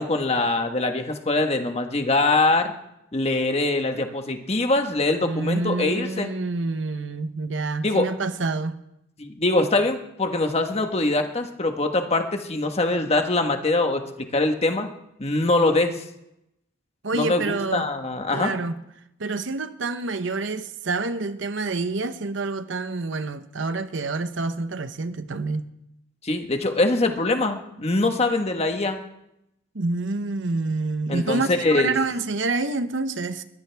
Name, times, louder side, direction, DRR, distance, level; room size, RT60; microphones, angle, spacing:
voice 1, 0.0-2.7 3.1-6.3 7.8-8.1 9.2-14.9 15.2-15.9 17.1-18.5 26.2-29.0 31.1-31.9, left 2 dB, 30° left, 1.4 m, -23 dB
voice 2, 5.2-8.7 17.0-17.9 18.3-18.8 19.2-25.6 29.7-33.4, right 3 dB, 65° right, 0.9 m, -27 dB
22.0 x 16.5 x 3.5 m
head